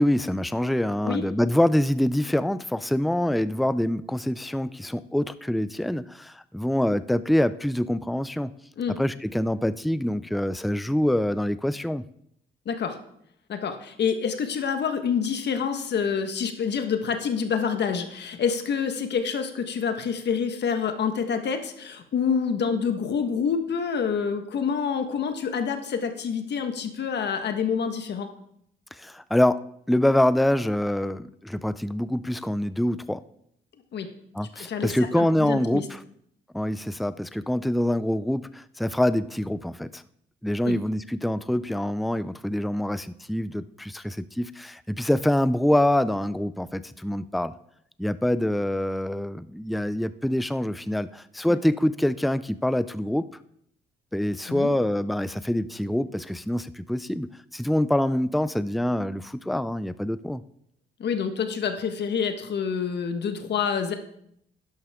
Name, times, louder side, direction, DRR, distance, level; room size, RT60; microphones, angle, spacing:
voice 1, 0.0-8.5 9.0-12.0 29.0-33.2 34.3-36.0 36.5-40.0 40.4-47.5 48.0-53.3 54.1-60.4, left 1 dB, ahead, 15 dB, 0.4 m, -25 dB
voice 2, 12.6-13.0 13.5-28.3 33.9-34.1 34.5-35.8 40.6-40.8 51.5-51.6 54.5-54.7 61.0-63.9, left 6 dB, 60° left, 7 dB, 1.4 m, -27 dB
11.5 x 11.0 x 3.6 m, 0.74 s
cardioid pair, 90°, 20 cm